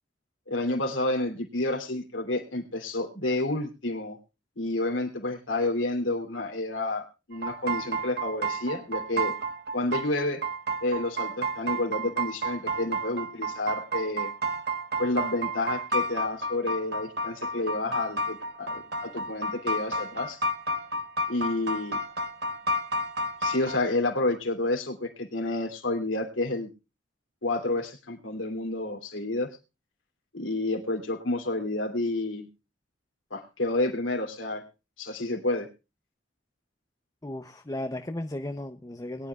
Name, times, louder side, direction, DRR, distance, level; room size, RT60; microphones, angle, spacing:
voice 1, 0.5-4.2 4.6-9.3 9.7-10.4 10.8-14.3 15.0-20.4 21.3-22.0 23.4-26.7 27.4-29.5 30.3-32.5 33.3-34.6 35.0-35.7, left 2 dB, 90° left, 3 dB, 2.9 m, -30 dB
sound 1, 7.3-23.8, right 1 dB, 55° right, 1.3 m, -31 dB
voice 2, 37.2-39.3, left 1 dB, 20° left, 7 dB, 0.6 m, -35 dB
22.0 x 10.5 x 2.3 m, 0.28 s
head